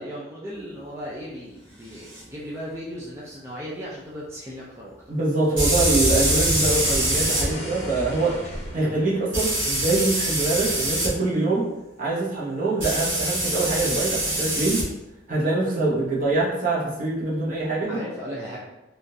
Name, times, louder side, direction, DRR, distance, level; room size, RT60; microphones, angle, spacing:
voice 1, 0.0-5.1 17.9-18.6, equal, 15° right, -6 dB, 0.4 m, -36 dB
sound 1, 2.1-2.2 5.6-7.5 9.3-11.1 12.8-14.8, right 1 dB, 75° right, 1.3 m, -24 dB
voice 2, 5.1-8.4 8.7-11.7 12.0-14.8 15.3-17.9, right 2 dB, 45° right, -5 dB, 0.9 m, -24 dB
sound 2, 6.1-10.5, equal, 35° left, 0.8 m, -36 dB
3.6 x 2.4 x 2.7 m, 0.97 s
head